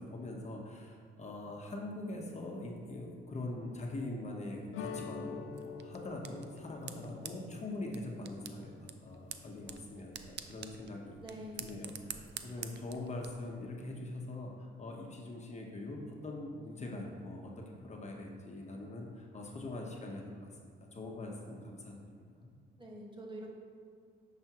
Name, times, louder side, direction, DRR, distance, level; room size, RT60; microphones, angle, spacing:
voice 1, 0.0-11.2 11.6-20.5 20.9-22.5, left 2 dB, 35° left, -1 dB, 1.2 m, -43 dB
sound 1, 4.7-9.6, left 6 dB, 80° left, 0.6 m, -47 dB
sound 2, 5.5-13.3, right 8 dB, 60° right, 0.5 m, -48 dB
voice 2, 11.2-11.8 12.2-12.7 22.8-23.5, equal, 25° right, -2 dB, 1.5 m, -47 dB
9.6 x 5.9 x 3.1 m, 2.1 s
cardioid pair, 90°, 20 cm